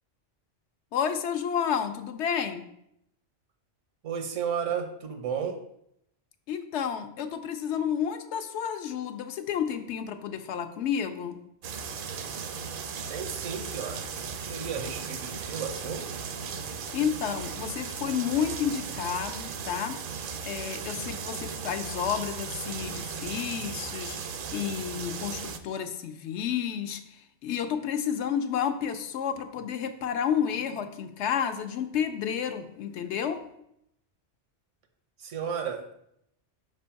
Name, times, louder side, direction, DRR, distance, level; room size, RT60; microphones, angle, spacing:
voice 1, 0.9-2.6 6.5-11.4 16.9-20.0 20.4-33.4, left 8 dB, 75° left, 8 dB, 0.9 m, -31 dB
voice 2, 4.0-5.6 13.1-16.2 35.2-35.9, right 7 dB, 85° right, 5 dB, 1.2 m, -33 dB
sound 1, 11.6-25.6, right 6 dB, 60° right, 0.6 m, -37 dB
5.2 x 3.4 x 5.6 m, 0.75 s
omnidirectional pair, 1.2 m